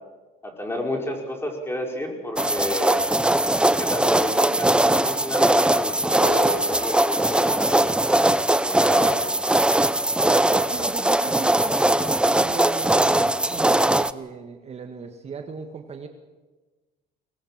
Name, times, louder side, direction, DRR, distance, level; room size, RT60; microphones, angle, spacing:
voice 1, 0.4-3.0 3.6-9.2, left 1 dB, 15° left, 2 dB, 5.1 m, -31 dB
sound 1, 2.4-14.1, right 1 dB, 5° right, 0.6 m, -20 dB
Keyboard (musical), 6.2-9.1, left 1 dB, 50° left, 7.2 m, -36 dB
voice 2, 10.3-16.1, right 5 dB, 40° right, 5 dB, 1.7 m, -37 dB
23.5 x 19.0 x 7.5 m, 1.2 s
cardioid pair, 110°, 17 cm